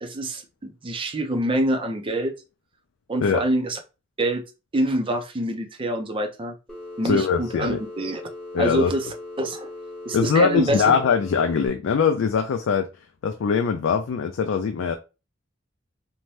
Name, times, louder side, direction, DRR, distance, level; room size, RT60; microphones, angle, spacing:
voice 1, 0.0-2.3 3.1-3.8 4.2-4.4 4.7-6.5 7.0-8.2 8.6-9.1 9.4-9.7 10.1-10.9, right 1 dB, 25° right, 0.5 m, -25 dB
Telephone, 6.7-11.7, left 2 dB, 5° left, 0.9 m, -39 dB
voice 2, 7.0-7.8 8.5-8.9 10.1-12.9 13.2-15.0, left 6 dB, 90° left, 0.4 m, -22 dB
2.6 x 2.1 x 3.1 m
head